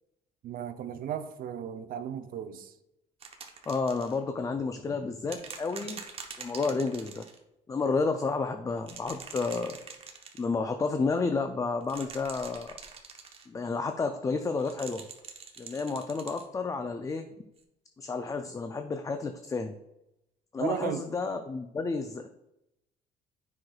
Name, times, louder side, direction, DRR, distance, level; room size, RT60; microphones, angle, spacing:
voice 1, 0.4-2.7 20.6-21.0, right 9 dB, 60° right, 9 dB, 0.6 m, -35 dB
sound 1, 3.2-4.2 5.3-7.4 8.8-10.4 11.8-13.5 14.6-16.5 17.6-17.7, right 5 dB, 35° right, 1.0 m, -45 dB
voice 2, 3.7-6.0 6.4-7.3 7.7-9.8 10.4-12.7 13.5-15.0 15.6-17.3 18.0-19.8 20.5-22.3, left 4 dB, 20° left, 7 dB, 0.4 m, -31 dB
7.7 x 5.7 x 2.3 m, 0.88 s
cardioid pair, 110°, 17 cm